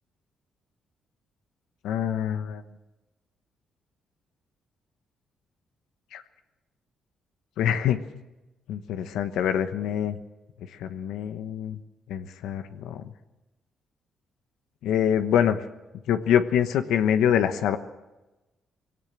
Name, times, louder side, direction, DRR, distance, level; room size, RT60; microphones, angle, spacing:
voice 1, 1.8-2.6 6.1-6.2 7.6-8.1 8.7-10.2 10.8-11.8 12.1-13.1 14.8-15.6 16.1-17.8, left 9 dB, 85° left, 9 dB, 1.1 m, -25 dB
20.0 x 17.0 x 7.4 m, 1.0 s
cardioid pair, 90°, 0 cm